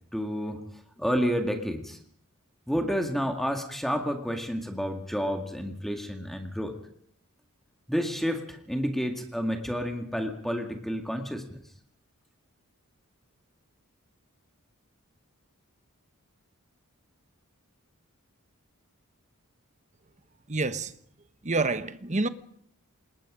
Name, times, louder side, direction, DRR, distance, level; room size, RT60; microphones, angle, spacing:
voice 1, 0.1-0.6 1.0-2.0 2.7-6.8 7.9-11.6, equal, ahead, 2.0 m, -30 dB
voice 2, 20.5-20.9 21.4-22.3, right 3 dB, 35° right, 1.1 m, -27 dB
27.5 x 20.5 x 5.1 m
head